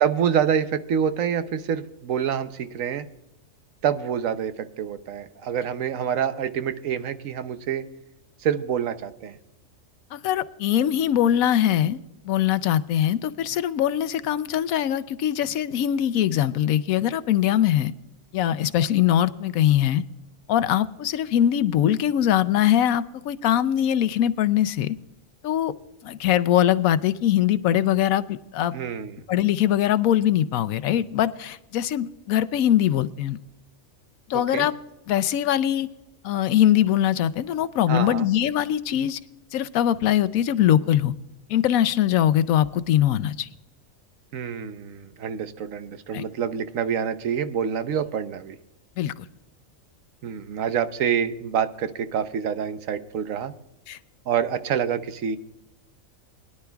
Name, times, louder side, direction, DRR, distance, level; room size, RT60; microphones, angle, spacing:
voice 1, 0.0-3.1 3.8-7.8 8.4-9.4 28.7-29.2 34.3-34.7 37.9-38.3 44.3-48.6 50.2-53.5 54.3-55.4, right 8 dB, 70° right, 11 dB, 1.1 m, -27 dB
voice 2, 10.1-12.0 12.2-17.9 18.3-20.0 20.5-25.0 25.4-25.7 26.0-28.7 29.3-33.4 34.3-34.7 35.1-35.9 36.2-39.2 39.5-41.1 41.5-43.5 46.1-46.2 49.0-49.1 53.9-54.0, left 11 dB, 85° left, 14 dB, 1.1 m, -22 dB
21.5 x 11.0 x 2.3 m, 0.93 s
omnidirectional pair, 1.4 m